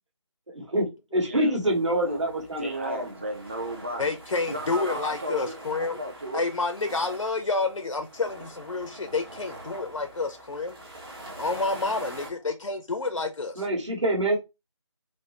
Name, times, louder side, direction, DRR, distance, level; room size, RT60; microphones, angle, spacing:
voice 1, 0.5-0.9 1.1-3.1 13.6-14.4, right 1 dB, 65° right, 1.6 m, -25 dB
voice 2, 1.2-1.6 2.0-4.2 4.5-6.4, equal, 25° right, 0.5 m, -35 dB
sound 1, 1.6-12.3, right 1 dB, 45° right, 1.5 m, -44 dB
voice 3, 4.0-6.0 6.3-10.8 11.4-13.6, left 3 dB, 80° left, 0.5 m, -29 dB
4.2 x 2.0 x 3.0 m
figure-of-eight pair, 160°, 16 cm